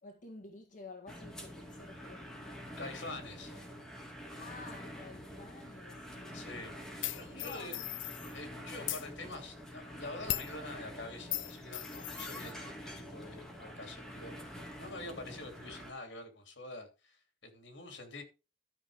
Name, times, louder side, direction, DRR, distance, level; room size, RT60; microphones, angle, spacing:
voice 1, 0.0-2.3 4.3-6.6 7.3-8.0, left 3 dB, 45° left, 1.7 m, -51 dB
sound 1, 1.1-15.9, equal, 5° left, 2.1 m, -47 dB
voice 2, 2.8-3.6 6.3-6.8 7.1-7.8 8.3-18.2, left 2 dB, 70° left, 3.0 m, -46 dB
sound 2, 7.0-8.3 8.7-9.1 10.3-10.6 11.3-12.5, left 13 dB, 90° left, 0.7 m, -38 dB
12.5 x 6.1 x 4.9 m
head